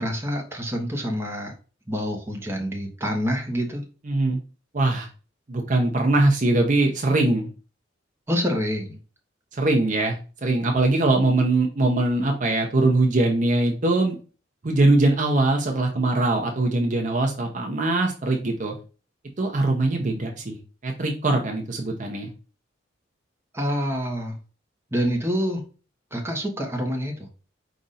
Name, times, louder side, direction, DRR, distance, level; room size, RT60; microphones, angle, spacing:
voice 1, 0.0-1.5 1.9-3.8 8.3-9.0 23.5-24.4 24.9-25.6 26.1-27.3, equal, 15° right, 0 dB, 1.0 m, -27 dB
voice 2, 4.0-4.4 4.7-5.1 5.5-7.5 9.5-14.2 14.6-18.7 19.4-20.6 20.8-22.3, right 2 dB, 40° right, 2 dB, 0.7 m, -22 dB
5.0 x 2.6 x 4.1 m, 0.35 s
head